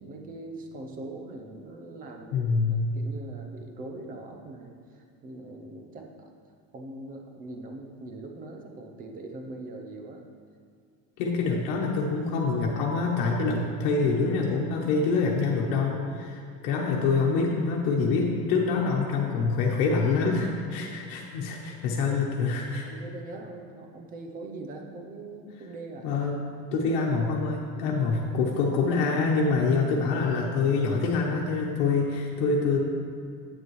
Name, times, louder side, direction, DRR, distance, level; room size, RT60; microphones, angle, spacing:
voice 1, 0.0-2.5 2.9-6.3 6.7-10.2 20.6-20.9 21.6-21.8 22.1-22.2 22.9-26.1 26.6-26.7 27.7-28.0, right 2 dB, 25° right, 2 dB, 0.7 m, -42 dB
voice 2, 2.3-2.8 11.2-22.9 26.0-26.4 26.7-32.8, left 4 dB, 85° left, -2 dB, 1.1 m, -26 dB
9.6 x 8.4 x 3.2 m, 2.2 s
cardioid pair, 180°, 32 cm